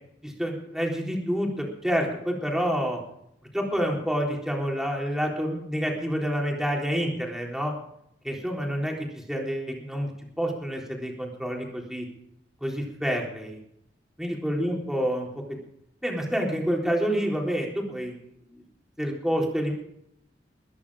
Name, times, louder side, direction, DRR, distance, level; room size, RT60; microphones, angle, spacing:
voice 1, 0.2-3.0 3.5-7.7 8.2-10.1 10.4-12.1 12.6-13.6 14.2-15.3 16.0-18.2 18.5-18.6 19.0-19.7, equal, 5° right, -1 dB, 3.9 m, -28 dB
22.0 x 11.0 x 4.9 m, 0.73 s
head